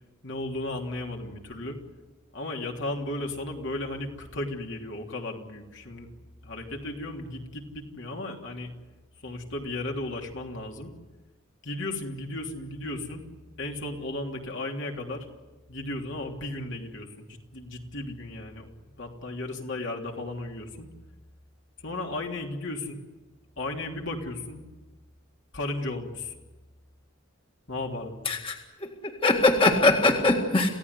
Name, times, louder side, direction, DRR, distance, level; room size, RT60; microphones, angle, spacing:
voice 1, 0.2-1.8 2.3-6.1 6.4-8.7 9.2-10.9 11.6-13.2 13.6-15.2 15.7-17.3 17.5-18.7 19.0-20.9 21.8-23.0 23.6-24.6 25.5-26.3 27.7-28.3, left 2 dB, 60° left, 1 dB, 3.2 m, -35 dB
voice 2, 28.3-28.6 29.0-30.7, left 2 dB, 25° left, 2 dB, 2.0 m, -21 dB
28.0 x 16.5 x 9.7 m, 1.2 s
head